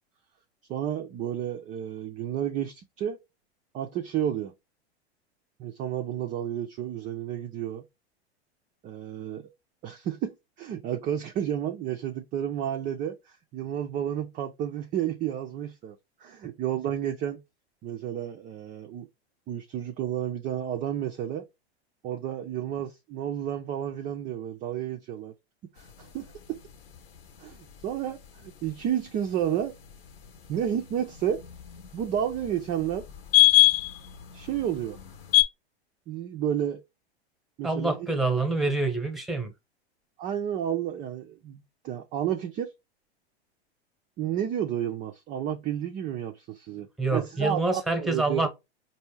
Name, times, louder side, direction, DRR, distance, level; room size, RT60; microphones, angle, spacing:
voice 1, 0.7-3.2 3.7-4.5 5.6-7.8 8.8-9.5 9.8-16.0 16.2-17.4 17.8-19.1 19.5-21.4 22.0-25.3 25.8-26.6 27.4-29.7 30.5-31.4 31.9-33.1 34.3-35.0 36.1-36.8 37.6-38.1 40.2-42.7 44.2-48.5, right 10 dB, 25° right, 0.4 m, -31 dB
sound 1, 25.8-35.4, left 16 dB, 60° left, 1.0 m, -28 dB
voice 2, 37.6-39.5 47.0-48.5, right 3 dB, ahead, 1.0 m, -26 dB
4.3 x 2.6 x 3.2 m
hypercardioid pair, 110°, 32 cm